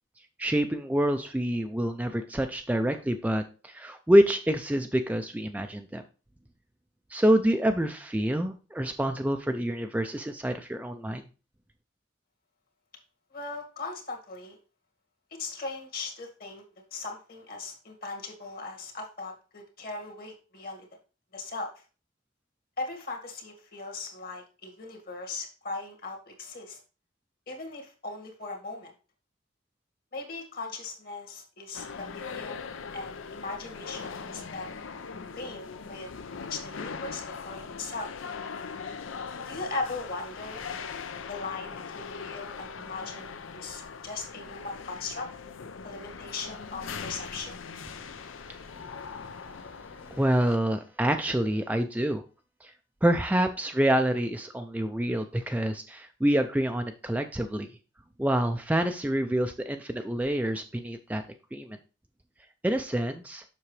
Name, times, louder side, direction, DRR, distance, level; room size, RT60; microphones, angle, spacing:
voice 1, 0.4-6.0 7.1-11.2 50.1-52.2 52.6-52.7 53.0-57.7 58.2-61.2 61.5-61.8 62.6-63.4, right 1 dB, 10° right, 6 dB, 0.4 m, -27 dB
voice 2, 13.3-14.6 15.3-16.6 16.9-20.9 21.3-21.7 22.8-26.8 27.5-28.9 30.1-32.7 32.9-34.7 35.4-36.1 36.5-38.1 39.5-40.9 41.3-45.3 45.8-47.6, left 3 dB, 50° left, 2 dB, 1.9 m, -38 dB
sound 1, 31.7-50.6, left 5 dB, 80° left, 0.6 m, -40 dB
7.3 x 6.1 x 3.2 m, 0.35 s
head